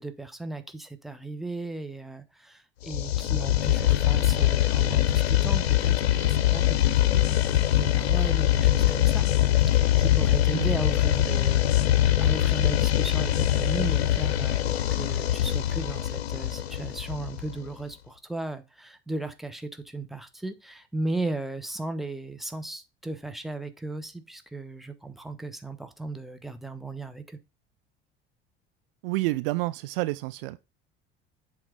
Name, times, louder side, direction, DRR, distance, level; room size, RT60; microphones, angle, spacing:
voice 1, 0.0-9.3 9.7-27.4, right 2 dB, ahead, 1.0 m, -36 dB
sound 1, 2.9-17.7, left 12 dB, 75° left, 0.5 m, -23 dB
voice 2, 29.0-30.6, right 19 dB, 60° right, 0.5 m, -29 dB
7.8 x 3.6 x 5.0 m
figure-of-eight pair, 65°, 31 cm